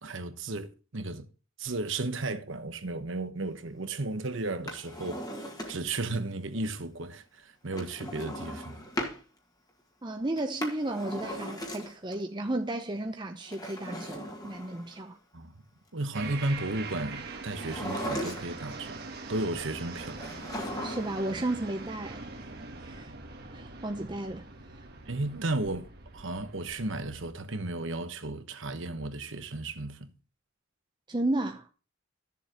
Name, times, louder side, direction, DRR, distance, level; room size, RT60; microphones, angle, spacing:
voice 1, 0.0-1.2 1.6-8.8 15.3-15.6 15.9-20.2 25.1-30.1, right 2 dB, 65° right, 1.1 m, -34 dB
Drawer open or close, 4.5-6.0 7.7-9.2 10.4-12.1 13.4-15.1 17.5-18.7 20.2-21.3 21.5-21.6, equal, 20° left, 1.8 m, -38 dB
voice 2, 10.0-15.2 20.8-22.5 22.8-23.1 23.5-24.4 31.1-31.7, right 1 dB, 20° right, 0.7 m, -33 dB
sound 1, 16.1-27.3, right 3 dB, 50° right, 1.4 m, -43 dB
13.5 x 7.2 x 2.9 m
head